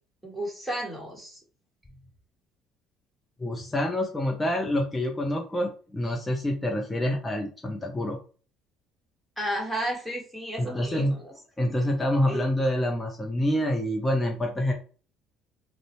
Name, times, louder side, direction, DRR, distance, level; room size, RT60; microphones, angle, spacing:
voice 1, 0.2-1.4 9.4-11.3 12.3-12.4, right 1 dB, ahead, -3 dB, 1.4 m, -33 dB
voice 2, 3.4-8.2 10.6-11.1 11.6-14.7, left 1 dB, 15° left, 1 dB, 0.5 m, -27 dB
2.6 x 2.1 x 3.0 m, 0.37 s
supercardioid pair, 85°, 0 cm